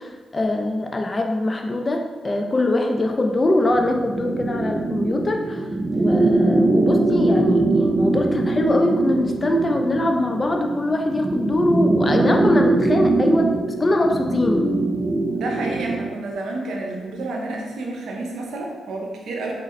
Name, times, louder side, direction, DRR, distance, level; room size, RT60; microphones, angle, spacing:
voice 1, 0.0-5.7 5.9-13.5 13.8-14.7, left 1 dB, 35° left, 3 dB, 0.6 m, -22 dB
sound 1, 3.7-16.2, right 2 dB, 35° right, 0.6 m, -22 dB
voice 2, 15.3-19.5, right 2 dB, 80° right, 0 dB, 0.8 m, -30 dB
4.1 x 3.8 x 3.2 m, 1.3 s
supercardioid pair, 55°, 0 cm